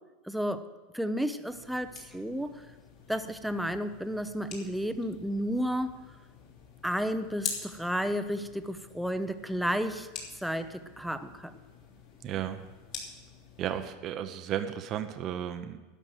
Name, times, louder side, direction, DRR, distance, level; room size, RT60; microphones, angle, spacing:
voice 1, 0.2-0.7 0.9-2.7 3.1-6.2 6.8-11.6, equal, ahead, 9 dB, 0.6 m, -32 dB
sound 1, 1.5-13.9, left 6 dB, 55° left, 3.0 m, -46 dB
voice 2, 12.2-12.6 13.6-15.8, right 10 dB, 40° right, 9 dB, 0.7 m, -34 dB
12.0 x 6.2 x 9.1 m, 1.2 s
supercardioid pair, 140°, 0 cm